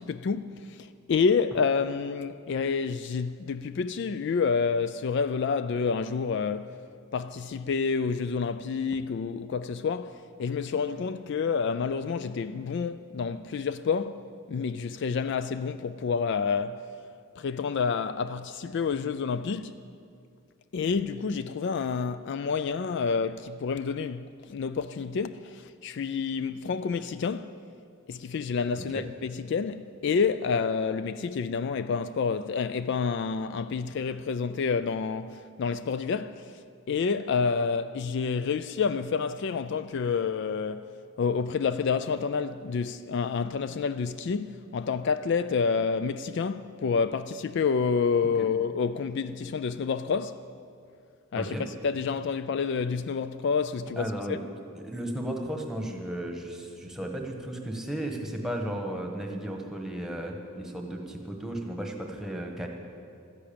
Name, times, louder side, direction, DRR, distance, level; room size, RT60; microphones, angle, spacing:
voice 1, 0.0-6.8 7.1-16.9 17.4-19.8 20.7-27.6 28.1-40.9 41.2-50.4 51.3-54.4, left 5 dB, 55° left, 0.3 m, -29 dB
voice 2, 54.0-54.4 54.8-62.7, right 1 dB, ahead, 1.3 m, -34 dB
13.0 x 10.5 x 8.6 m
head